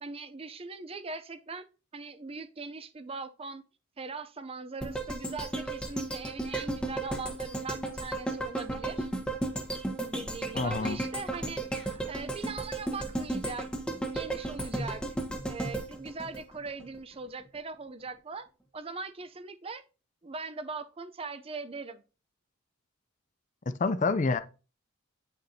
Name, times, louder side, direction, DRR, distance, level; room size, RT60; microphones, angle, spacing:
voice 1, 0.0-1.6 1.9-3.6 4.0-9.1 10.0-13.7 14.0-15.0 15.5-18.5 18.7-19.8 20.2-22.0, right 4 dB, 30° right, 0.5 m, -40 dB
sound 1, 4.8-17.0 17.4-17.5, right 2 dB, 5° left, 1.1 m, -34 dB
voice 2, 10.5-11.0 23.7-24.4, left 3 dB, 35° left, 0.5 m, -27 dB
9.5 x 6.6 x 2.8 m
head